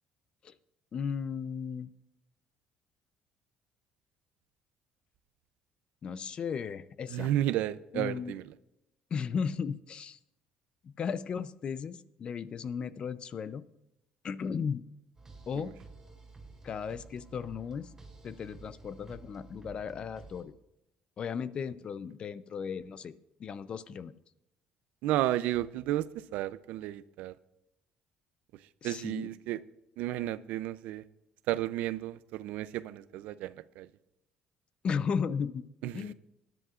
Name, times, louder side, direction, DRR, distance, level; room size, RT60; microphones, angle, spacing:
voice 1, 0.9-1.9 6.0-7.3 7.9-8.3 9.1-10.2 10.8-13.6 14.2-14.8 15.5-15.7 16.6-17.9 18.2-20.5 21.2-23.1 23.4-24.1 28.8-29.3 34.8-35.6 35.9-36.1, left 6 dB, 40° left, 15 dB, 0.5 m, -35 dB
voice 2, 7.1-8.4 15.6-15.7 25.0-27.3 28.8-29.6 30.0-31.0 31.5-33.9 35.8-36.1, right 14 dB, 85° right, 15 dB, 0.5 m, -32 dB
sound 1, 15.1-20.4, right 3 dB, 15° right, 4.4 m, -52 dB
20.0 x 10.5 x 2.5 m, 0.88 s
cardioid pair, 125°, 3 cm